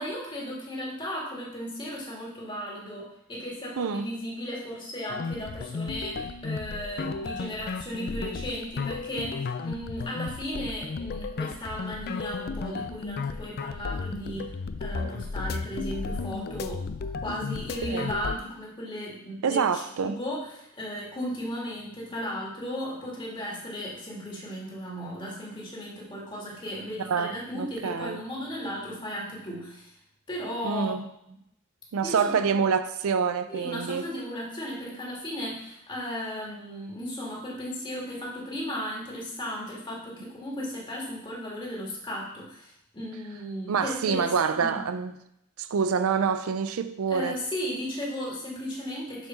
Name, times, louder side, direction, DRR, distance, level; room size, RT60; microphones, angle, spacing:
voice 1, 0.0-16.9 17.2-29.9 30.3-30.9 32.0-32.6 33.5-44.8 47.1-49.3, equal, 20° left, 2.0 m, -36 dB
voice 2, 3.8-4.1 7.2-7.3 17.9-18.1 19.4-20.2 27.0-28.2 30.6-31.0 31.9-34.0 43.7-45.2 45.6-47.4, right 6 dB, 70° right, 0.4 m, -27 dB
sound 1, 5.1-18.4, left 4 dB, 45° left, 0.4 m, -34 dB
6.7 x 4.5 x 5.8 m
head